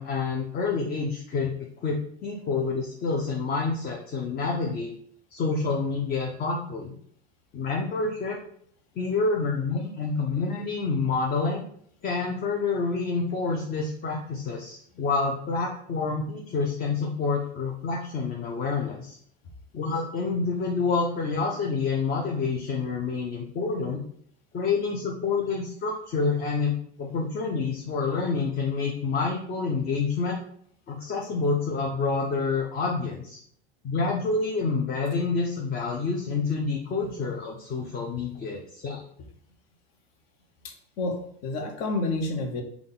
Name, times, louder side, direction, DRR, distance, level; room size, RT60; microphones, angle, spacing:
voice 1, 0.0-1.6 1.8-4.9 5.3-6.9 7.5-8.4 9.0-11.6 12.0-19.2 19.7-24.0 24.5-30.4 30.9-33.4 33.8-39.0, left 4 dB, 30° left, 0 dB, 0.6 m, -28 dB
voice 2, 40.6-42.6, left 2 dB, 55° left, 5 dB, 0.9 m, -30 dB
3.7 x 2.3 x 3.8 m, 0.63 s
hypercardioid pair, 105°, 32 cm